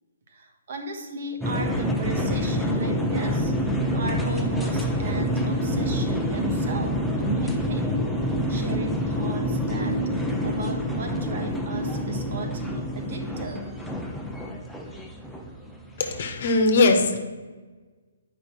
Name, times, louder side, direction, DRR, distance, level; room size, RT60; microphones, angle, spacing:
voice 1, 0.3-7.9 8.5-13.6, right 2 dB, 50° right, 3 dB, 1.4 m, -36 dB
sound 1, 1.4-16.4, equal, ahead, 0.7 m, -27 dB
voice 2, 16.0-17.2, left 3 dB, 50° left, 5 dB, 1.2 m, -20 dB
9.4 x 5.3 x 4.5 m, 1.3 s
figure-of-eight pair, 130°, 0 cm